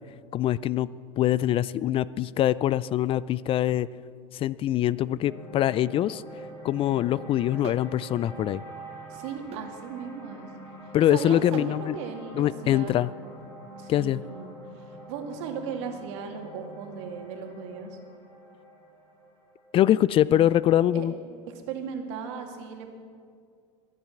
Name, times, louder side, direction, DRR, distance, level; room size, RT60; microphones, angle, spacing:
voice 1, 0.3-0.9 1.2-3.9 4.3-6.2 6.6-8.6 10.9-12.0 12.3-13.1 13.9-14.2 19.7-21.1, left 12 dB, 35° left, 19 dB, 0.3 m, -23 dB
sound 1, 5.3-21.5, right 1 dB, 15° left, 4.4 m, -46 dB
sound 2, 7.6-7.9 9.5-9.7 11.5-11.8, right 10 dB, 40° right, 0.6 m, -41 dB
voice 2, 9.1-10.5 11.1-13.0 13.7-18.0 20.9-21.1 21.5-22.9, right 6 dB, 70° right, 3 dB, 2.3 m, -37 dB
22.0 x 7.5 x 7.2 m, 2.2 s
supercardioid pair, 105°, 16 cm